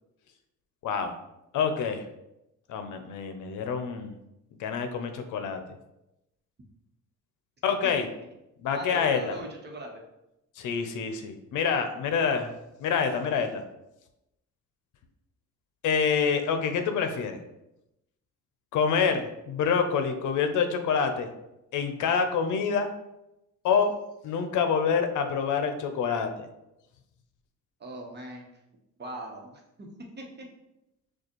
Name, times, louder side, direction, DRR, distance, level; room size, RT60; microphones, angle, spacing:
voice 1, 1.5-2.0 2.7-4.1 4.6-5.6 7.6-8.0 8.6-9.3 10.6-12.5 12.8-13.6 15.8-17.4 18.7-21.3 21.7-22.9 23.6-23.9 24.2-26.3, left 6 dB, 80° left, 7 dB, 0.6 m, -26 dB
voice 2, 8.7-10.0 27.8-28.4 29.0-29.9 30.2-30.5, right 1 dB, 35° right, 1 dB, 1.1 m, -40 dB
6.3 x 2.4 x 3.0 m, 0.90 s
cardioid pair, 90°, 30 cm